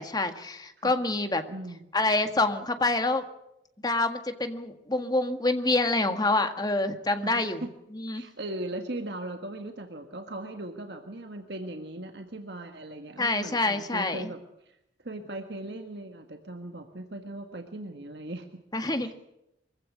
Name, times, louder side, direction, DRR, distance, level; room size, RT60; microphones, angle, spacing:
voice 1, 0.0-1.4 1.9-3.2 3.8-7.6 7.9-8.2 13.2-14.3 18.7-19.1, left 2 dB, 20° left, 7 dB, 1.7 m, -27 dB
voice 2, 1.5-1.9 7.2-7.7 8.1-14.4 14.6-14.8 15.0-18.6 19.0-19.1, right 1 dB, 65° right, 5 dB, 1.7 m, -38 dB
24.0 x 16.0 x 8.4 m, 0.84 s
head